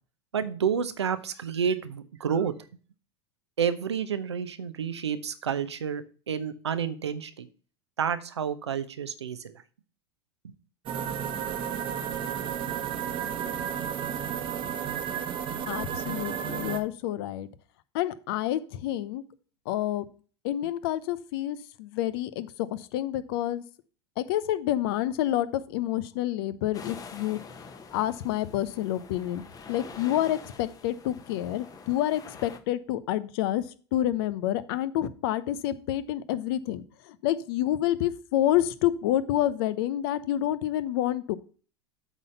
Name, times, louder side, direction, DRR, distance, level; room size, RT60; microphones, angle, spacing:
voice 1, 0.3-2.5 3.6-7.5 8.0-9.6 10.4-10.5, right 7 dB, 85° right, 11 dB, 0.8 m, -30 dB
sound 1, 10.9-16.8, right 8 dB, 40° right, 1.2 m, -32 dB
voice 2, 15.7-17.5 17.9-19.2 19.7-20.1 20.4-23.6 24.2-27.4 27.9-29.4 29.7-33.6 33.9-41.4, left 13 dB, 60° left, 16 dB, 0.8 m, -28 dB
sound 2, 26.7-32.6, left 5 dB, 25° left, 1.1 m, -46 dB
8.1 x 4.2 x 5.6 m, 0.39 s
hypercardioid pair, 90°, 14 cm